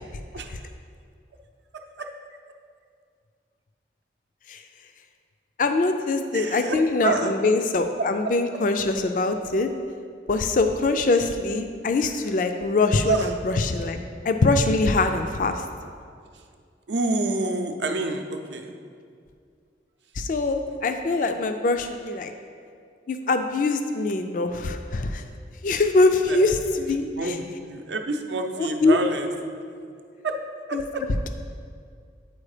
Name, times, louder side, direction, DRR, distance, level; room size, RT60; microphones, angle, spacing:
voice 1, 5.6-9.7 10.3-14.0 14.2-15.6 20.2-22.3 23.1-25.2 25.6-27.4 28.6-29.0 30.7-30.8, left 3 dB, 45° left, 7 dB, 0.3 m, -23 dB
voice 2, 6.3-6.8 7.0-7.3 13.0-13.3 16.9-18.7 26.3-26.4 27.2-29.3 30.2-30.4 30.7-31.0, right 2 dB, 80° right, 5 dB, 0.6 m, -27 dB
8.5 x 4.4 x 4.9 m, 2.2 s
head